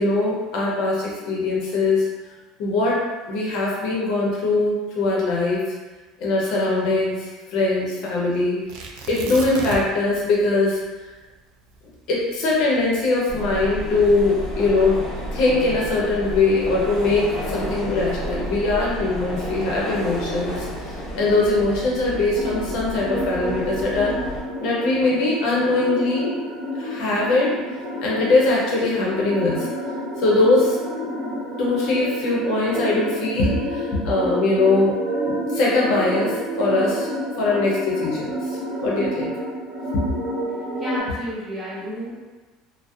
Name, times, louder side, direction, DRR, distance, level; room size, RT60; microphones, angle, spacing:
voice 1, 0.0-2.0 2.6-3.0 3.3-5.6 6.2-8.6 9.1-10.8 12.1-15.0 15.3-24.1 24.6-26.5 26.8-27.5 28.0-29.7 30.2-30.8 31.6-35.0 35.3-37.1 37.4-39.3 39.9-40.1, left 2 dB, 60° left, -4 dB, 0.7 m, -21 dB
Tearing, 8.7-10.1 10.4-10.5 11.0-13.4 14.1-14.5, right 3 dB, 65° right, 0.3 m, -35 dB
sound 1, 13.3-24.4, equal, 35° left, 1.4 m, -31 dB
sound 2, 22.3-41.0, equal, 85° right, 0.7 m, -29 dB
voice 2, 40.8-42.2, equal, 15° right, -6 dB, 0.7 m, -30 dB
2.5 x 2.0 x 2.4 m, 1.2 s
cardioid pair, 140°, 0 cm